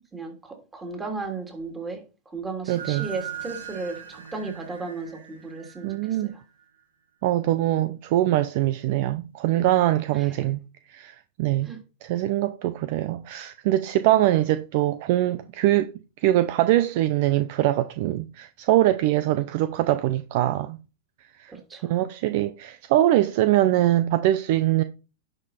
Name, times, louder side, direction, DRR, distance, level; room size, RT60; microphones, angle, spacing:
voice 1, 0.1-6.4 10.1-10.5 11.6-11.8 21.5-22.0, right 3 dB, 15° right, 3.1 m, -35 dB
voice 2, 2.7-3.1 5.8-6.3 7.2-10.6 10.9-11.7 12.0-15.9 16.2-20.8 21.4-21.5 21.8-24.8, right 14 dB, 55° right, 0.7 m, -23 dB
sound 1, 2.7-6.6, right 8 dB, 85° right, 2.3 m, -40 dB
11.0 x 5.5 x 4.3 m
hypercardioid pair, 110°, 0 cm